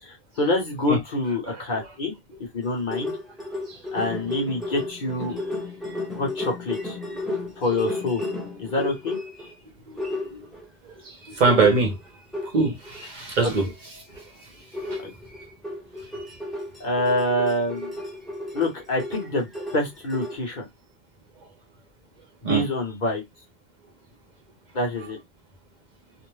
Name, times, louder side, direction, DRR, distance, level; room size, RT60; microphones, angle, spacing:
voice 1, 0.0-2.1 2.5-3.1 3.9-5.4 6.1-7.0 7.6-8.2 8.6-9.2 15.0-15.1 16.8-17.9 18.5-19.5 19.7-20.7 22.4-23.2 24.7-25.2, left 1 dB, 50° left, 1.0 m, -26 dB
voice 2, 1.5-1.9 3.7-3.9 9.9-10.5 10.8-12.0 12.4-15.0 22.4-22.6, right 3 dB, 50° right, 0.7 m, -25 dB
sound 1, 2.6-9.5 10.0-10.7 11.2-13.1 13.5-13.8 14.1-14.3 14.7-20.4, left 2 dB, ahead, 0.6 m, -33 dB
2.6 x 2.0 x 3.1 m
omnidirectional pair, 1.0 m